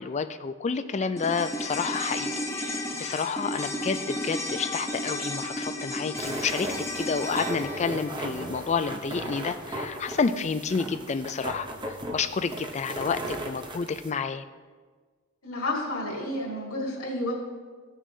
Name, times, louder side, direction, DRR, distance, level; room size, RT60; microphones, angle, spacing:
voice 1, 0.0-14.4, left 5 dB, 30° left, 11 dB, 0.3 m, -30 dB
sound 1, 1.2-9.7 9.9-10.0, left 1 dB, 15° left, 0.7 m, -34 dB
sound 2, 6.2-14.1, right 1 dB, 20° right, 0.7 m, -37 dB
voice 2, 15.4-17.3, left 1 dB, 65° left, -5 dB, 2.2 m, -30 dB
16.0 x 6.1 x 2.7 m, 1.5 s
head